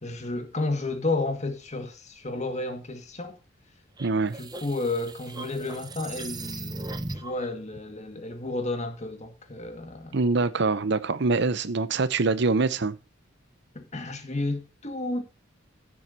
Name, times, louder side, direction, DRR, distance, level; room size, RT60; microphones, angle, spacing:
voice 1, 0.0-3.4 4.4-10.2 13.7-15.2, left 2 dB, 35° left, 2.0 m, -32 dB
sound 1, 4.0-7.5, right 2 dB, 20° right, 0.8 m, -38 dB
voice 2, 4.0-4.4 10.1-13.0, right 3 dB, 60° right, 0.7 m, -24 dB
16.0 x 7.6 x 2.8 m
head